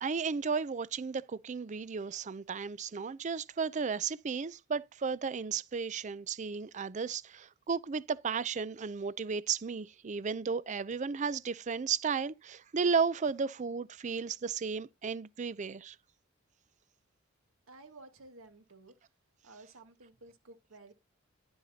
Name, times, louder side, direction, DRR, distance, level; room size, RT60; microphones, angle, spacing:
voice 1, 0.0-15.9, right 5 dB, 35° right, 0.4 m, -34 dB
voice 2, 17.7-19.0 19.4-20.9, right 2 dB, 80° right, 1.5 m, -54 dB
11.0 x 7.8 x 2.8 m
head